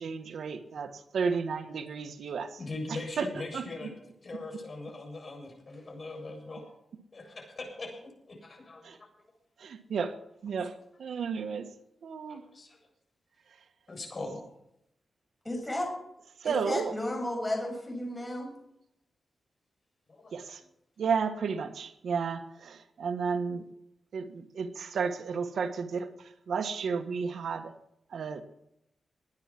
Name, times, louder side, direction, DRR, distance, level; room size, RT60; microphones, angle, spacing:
voice 1, 0.0-2.6 2.9-3.9 4.3-4.4 8.8-9.0 9.6-11.7 12.0-12.5 13.5-13.6 16.4-17.0 20.3-20.6 21.0-23.7 24.1-27.7 28.1-28.4, right 5 dB, 80° right, 6 dB, 1.5 m, -33 dB
voice 2, 2.6-3.9 4.2-6.6 7.1-8.0 8.3-9.1 12.3-12.8 13.9-14.4 20.1-20.3, left 2 dB, 40° left, 2 dB, 7.6 m, -41 dB
voice 3, 15.4-15.9 16.4-18.5, left 1 dB, 15° left, 1 dB, 7.0 m, -33 dB
21.0 x 9.8 x 6.0 m, 0.79 s
cardioid pair, 95°, 0 cm